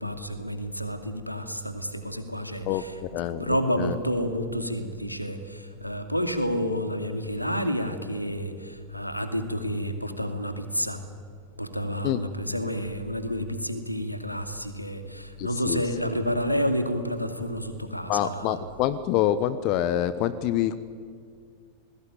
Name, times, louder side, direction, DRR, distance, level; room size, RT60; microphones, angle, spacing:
voice 1, 0.0-11.0 11.6-18.6, equal, 90° left, 8 dB, 2.5 m, -30 dB
voice 2, 2.6-4.0 12.0-12.2 15.4-15.8 18.1-20.8, left 12 dB, 40° left, 15 dB, 1.1 m, -26 dB
29.0 x 20.0 x 9.4 m, 2.1 s
figure-of-eight pair, 90°, 0 cm